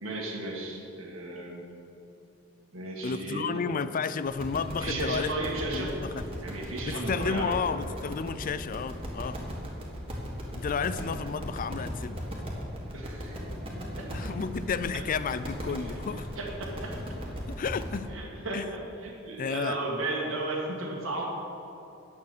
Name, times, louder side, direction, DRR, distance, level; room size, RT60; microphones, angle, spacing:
voice 1, 0.0-1.7 2.7-3.6 4.8-5.9 6.4-7.6 12.9-13.4 13.8-14.1 15.9-16.0 16.4-16.9 18.1-21.3, right 2 dB, 75° right, -2 dB, 1.7 m, -34 dB
voice 2, 3.0-5.3 5.7-6.2 6.9-9.4 10.6-12.2 14.1-16.3 17.5-18.1 18.5-18.6 19.4-19.8, left 5 dB, 40° left, 14 dB, 0.4 m, -32 dB
sound 1, 4.3-18.0, equal, 30° right, 1.9 m, -37 dB
9.8 x 8.2 x 6.7 m, 2.9 s
head